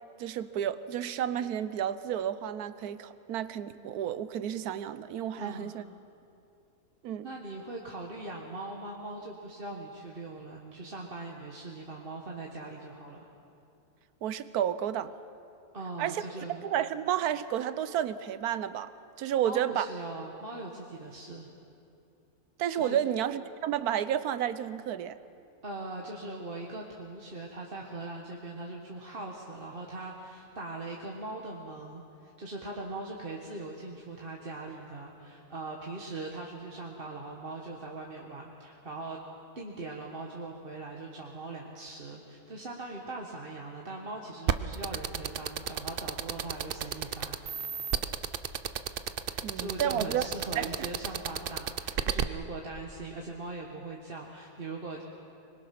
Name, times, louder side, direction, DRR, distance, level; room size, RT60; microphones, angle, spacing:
voice 1, 0.2-5.8 7.0-7.3 14.2-15.1 16.0-18.9 19.2-19.9 22.6-25.2 49.4-50.3 50.6-50.9, right 10 dB, 75° right, 14 dB, 1.2 m, -31 dB
voice 2, 5.4-5.7 7.2-13.2 15.7-16.6 19.4-21.5 22.7-23.0 25.6-39.2 39.5-47.4 49.2-55.0, right 2 dB, 35° right, -1 dB, 1.5 m, -41 dB
sound 1, 44.5-52.2, right 8 dB, 55° right, 0.6 m, -31 dB
25.0 x 22.0 x 5.9 m, 2.6 s
omnidirectional pair, 1.7 m